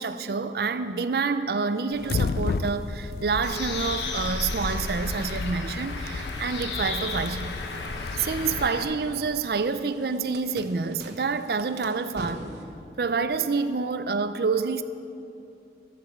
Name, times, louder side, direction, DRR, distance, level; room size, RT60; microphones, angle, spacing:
voice 1, 0.0-6.0 6.4-7.5 8.2-12.5 13.0-14.8, right 4 dB, 60° right, 0.5 m, -27 dB
sound 1, 1.9-8.7, left 3 dB, 60° left, 0.4 m, -33 dB
Bird, 3.4-8.8, left 3 dB, 85° left, 1.2 m, -34 dB
sound 2, 7.6-12.6, right 1 dB, 80° right, 1.2 m, -44 dB
13.0 x 7.9 x 7.1 m
head